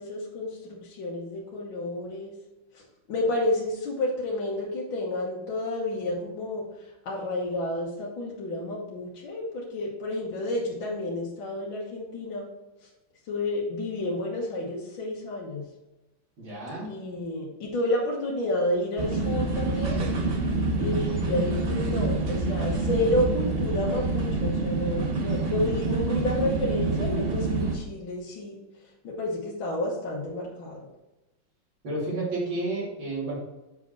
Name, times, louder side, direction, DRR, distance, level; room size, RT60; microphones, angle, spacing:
voice 1, 0.0-2.4 2.7-6.7 7.0-12.5 13.3-15.7 16.8-20.1 20.8-28.6 29.0-30.8, left 1 dB, 75° left, -4 dB, 2.0 m, -30 dB
voice 2, 16.4-17.0 31.8-33.4, right 2 dB, 80° right, -6 dB, 3.6 m, -31 dB
sound 1, 19.0-27.8, right 3 dB, 55° right, 0.6 m, -27 dB
7.1 x 5.0 x 4.5 m, 1.0 s
omnidirectional pair, 2.1 m